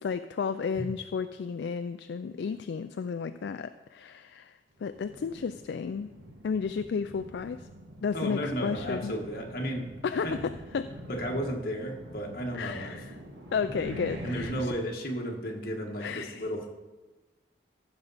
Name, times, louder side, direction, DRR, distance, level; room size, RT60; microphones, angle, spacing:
voice 1, 0.0-4.5 4.8-6.1 6.4-7.7 8.0-9.1 10.0-10.9 12.5-13.1 13.5-14.7 16.0-16.4, left 6 dB, 70° left, 10 dB, 0.3 m, -33 dB
sound 1, 4.8-14.7, right 1 dB, 85° right, 1.4 m, -44 dB
voice 2, 8.1-9.9 10.2-10.4 11.1-13.0 14.2-16.7, equal, 55° left, 1 dB, 1.6 m, -33 dB
15.0 x 5.8 x 4.1 m, 1.2 s
head